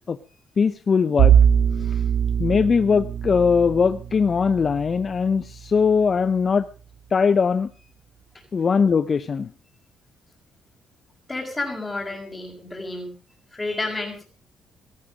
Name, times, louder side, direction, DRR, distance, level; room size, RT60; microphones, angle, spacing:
voice 1, 0.6-1.4 1.8-2.0 2.4-6.7 7.1-7.7 8.5-9.5, left 5 dB, 40° left, 13 dB, 0.7 m, -20 dB
Bowed string instrument, 1.2-6.3, right 8 dB, 85° right, 3.7 m, -22 dB
voice 2, 11.3-13.1 13.5-14.2, left 2 dB, 15° left, -4 dB, 5.1 m, -30 dB
17.5 x 13.5 x 5.0 m, 0.36 s
cardioid pair, 90°, 0 cm